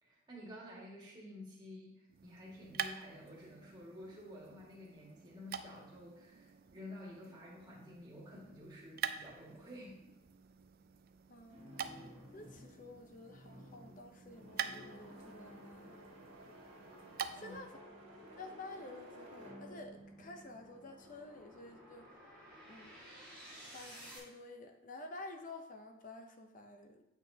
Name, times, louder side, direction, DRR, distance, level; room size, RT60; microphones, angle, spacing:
voice 1, 0.0-10.0 17.4-17.6, left 1 dB, 20° right, -5 dB, 1.8 m, -51 dB
sound 1, 2.1-17.7, right 8 dB, 45° right, 0.3 m, -47 dB
sound 2, 10.3-24.2, equal, 5° left, 2.3 m, -58 dB
voice 2, 11.3-12.0 12.3-16.0 17.3-17.8 18.4-22.1 22.7-23.0 23.6-27.0, left 2 dB, 40° left, 5 dB, 0.6 m, -51 dB
sound 3, 11.5-21.5, equal, 70° right, 1.9 m, -55 dB
8.5 x 5.9 x 2.7 m, 0.87 s
head